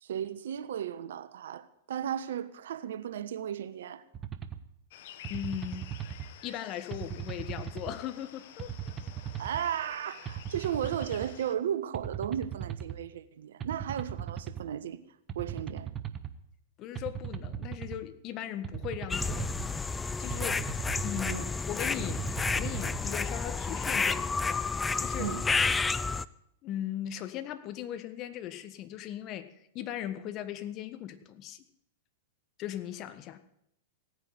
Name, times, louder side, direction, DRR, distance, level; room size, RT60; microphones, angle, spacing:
voice 1, 0.0-4.0 9.4-15.0 15.3-15.9 21.3-21.5 25.2-25.4, right 9 dB, 70° right, 1.1 m, -35 dB
sound 1, 4.1-4.6 5.2-6.3 6.9-7.9 8.6-9.6 10.3-11.3 11.9-13.0 13.6-14.6 15.3-16.3 17.0-18.0 18.6-19.7 20.3-21.3 22.0-23.0, right 9 dB, 25° right, 1.4 m, -38 dB
sound 2, 4.9-11.6, left 11 dB, 60° left, 1.2 m, -51 dB
voice 2, 5.3-5.8 6.4-8.7 16.8-19.5 20.2-20.6 21.0-24.7 25.0-25.3 26.6-31.6 32.6-33.4, left 11 dB, 40° left, 1.6 m, -38 dB
sound 3, 19.1-26.2, left 4 dB, 15° left, 0.5 m, -30 dB
17.0 x 9.7 x 7.9 m
hypercardioid pair, 105°, 0 cm